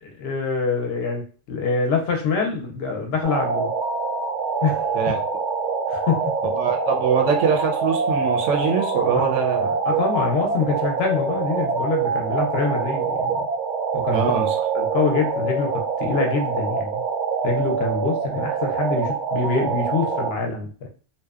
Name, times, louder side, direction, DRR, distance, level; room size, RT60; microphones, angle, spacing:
voice 1, 0.0-3.7 4.6-5.1 5.9-6.3 9.1-9.3 9.8-13.4 13.9-14.3 14.7-17.0 17.4-20.9, left 4 dB, 65° left, 2 dB, 0.7 m, -25 dB
sound 1, 3.2-20.3, right 5 dB, 60° right, 0.5 m, -25 dB
voice 2, 6.5-9.8 14.1-14.6, right 6 dB, 80° right, 2 dB, 0.9 m, -23 dB
2.6 x 2.0 x 2.3 m, 0.39 s
omnidirectional pair, 1.2 m